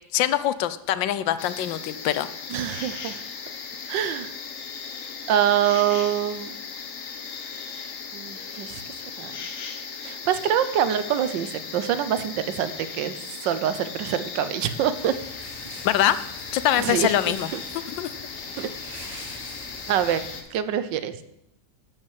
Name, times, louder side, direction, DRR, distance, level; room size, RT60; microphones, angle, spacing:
voice 1, 0.1-2.3 15.8-16.2 16.5-17.5 18.0-18.1, left 12 dB, 80° left, 14 dB, 1.3 m, -23 dB
sound 1, 1.4-20.4, left 5 dB, 50° left, 1.2 m, -37 dB
voice 2, 2.5-3.2 3.9-4.3 5.3-6.5 8.1-8.8 9.2-9.4 10.0-13.1 13.4-15.2 16.8-17.1 17.5-17.6 18.6-18.7 19.9-20.2 20.5-21.1, right 10 dB, 80° right, 13 dB, 1.4 m, -25 dB
sound 2, 14.9-20.4, equal, ahead, 4.6 m, -43 dB
12.0 x 5.3 x 7.3 m, 0.80 s
omnidirectional pair, 2.0 m